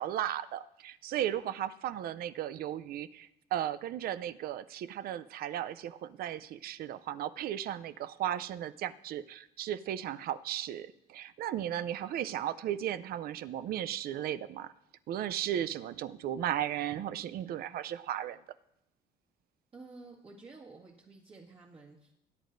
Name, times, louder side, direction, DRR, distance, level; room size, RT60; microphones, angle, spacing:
voice 1, 0.0-14.7 15.1-18.4, right 11 dB, 65° right, 14 dB, 0.5 m, -35 dB
voice 2, 19.7-22.2, right 3 dB, 35° right, -4 dB, 1.8 m, -52 dB
18.5 x 9.3 x 2.6 m, 0.80 s
cardioid pair, 110°, 17 cm